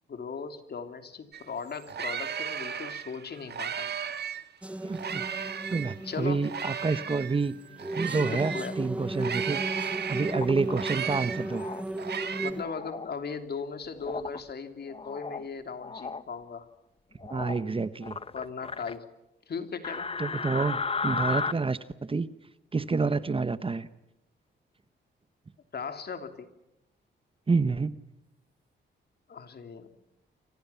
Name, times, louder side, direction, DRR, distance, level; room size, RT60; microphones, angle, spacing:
voice 1, 0.1-4.0 6.0-6.5 8.1-8.8 12.4-16.7 18.3-19.1 19.5-20.1 25.7-26.5 29.3-29.9, left 5 dB, 55° left, 8 dB, 3.1 m, -38 dB
sound 1, 1.3-1.4 1.7-4.5 4.9-8.7 9.2-12.5, right 7 dB, 55° right, 1.9 m, -35 dB
sound 2, 4.6-12.6, right 1 dB, 5° right, 1.1 m, -36 dB
voice 2, 4.8-5.2 5.7-7.6 8.0-9.6 10.1-11.6 17.3-18.2 20.2-22.3 22.7-23.9 27.5-27.9, right 4 dB, 30° right, 14 dB, 1.2 m, -28 dB
sound 3, 10.2-10.8 11.5-11.8 12.6-13.1 14.0-14.4 14.9-15.5 15.8-16.2 17.2-17.6 18.0-18.9 19.8-21.5, left 4 dB, 30° left, 1.2 m, -34 dB
29.5 x 25.5 x 5.9 m, 0.90 s
cardioid pair, 105°, 20 cm